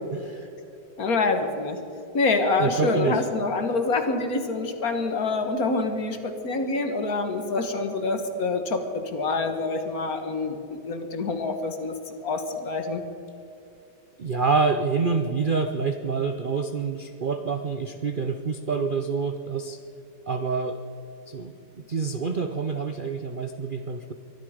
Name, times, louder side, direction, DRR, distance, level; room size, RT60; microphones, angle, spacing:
voice 1, 0.1-0.5 2.6-3.2 14.2-19.8 20.3-20.8 21.3-21.5 21.9-24.1, right 4 dB, 70° right, 7 dB, 0.5 m, -27 dB
voice 2, 1.0-1.8 2.1-13.0, left 3 dB, 50° left, 7 dB, 1.8 m, -26 dB
23.5 x 12.0 x 5.1 m, 2.8 s
omnidirectional pair, 2.0 m